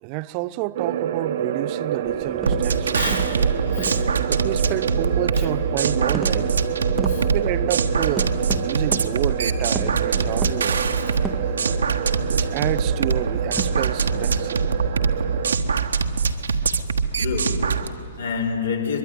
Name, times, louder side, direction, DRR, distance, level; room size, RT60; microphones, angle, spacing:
voice 1, 0.0-3.0 4.3-6.5 7.2-11.0 12.3-14.7, right 17 dB, 35° right, 0.6 m, -29 dB
sound 1, 0.8-15.6, right 9 dB, 50° right, 1.3 m, -28 dB
sound 2, 2.0-14.1, right 1 dB, 5° right, 1.1 m, -37 dB
sound 3, 2.5-17.9, right 5 dB, 65° right, 1.4 m, -23 dB
voice 2, 2.9-4.1 5.4-5.5 7.0-7.3 15.4-15.5 16.5-16.6 17.2-19.0, left 5 dB, 65° left, 5.1 m, -30 dB
23.0 x 22.5 x 9.6 m
figure-of-eight pair, 115°, 0 cm